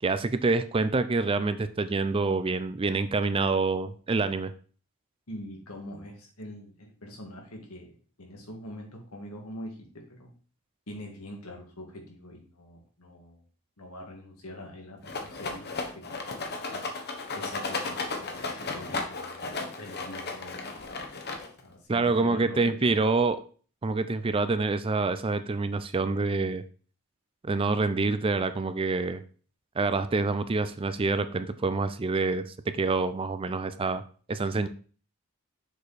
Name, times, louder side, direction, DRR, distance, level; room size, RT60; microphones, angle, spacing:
voice 1, 0.0-4.5 21.9-23.4 23.8-26.6 27.4-29.2 29.8-34.0 34.3-34.7, right 3 dB, 25° right, 12 dB, 0.4 m, -27 dB
voice 2, 5.3-7.9 8.2-10.3 10.9-13.4 13.8-16.8 17.3-19.5 19.8-20.8 21.6-23.0, left 1 dB, 90° left, 1 dB, 2.2 m, -44 dB
Rattle, 15.0-21.7, left 3 dB, 50° left, 1.1 m, -35 dB
6.9 x 4.9 x 4.1 m, 0.40 s
head